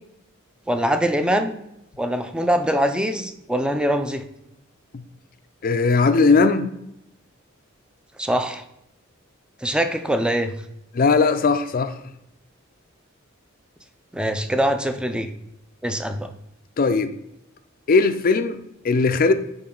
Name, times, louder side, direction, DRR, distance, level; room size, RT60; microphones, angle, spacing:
voice 1, 0.7-1.6 2.0-4.2 8.2-8.6 9.6-10.5 14.1-15.3 15.8-16.3, equal, 5° right, 0.5 m, -23 dB
voice 2, 5.6-6.7 10.9-11.9 16.8-17.1 17.9-19.3, left 4 dB, 45° left, 0.4 m, -18 dB
10.0 x 3.8 x 3.8 m
head